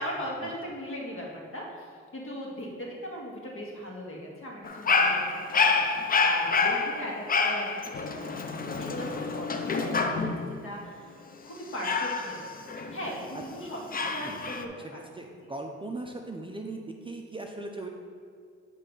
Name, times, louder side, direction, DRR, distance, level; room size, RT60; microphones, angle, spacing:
voice 1, 0.0-5.9 6.2-11.1 11.4-15.0, equal, 45° left, -2 dB, 1.9 m, -39 dB
Dog, 4.6-10.5 11.8-13.3 13.9-14.6, left 4 dB, 30° left, 0.6 m, -27 dB
voice 2, 14.2-17.9, right 2 dB, 15° right, 2 dB, 0.5 m, -39 dB
9.0 x 3.3 x 5.4 m, 2.3 s
cardioid pair, 90°, 30 cm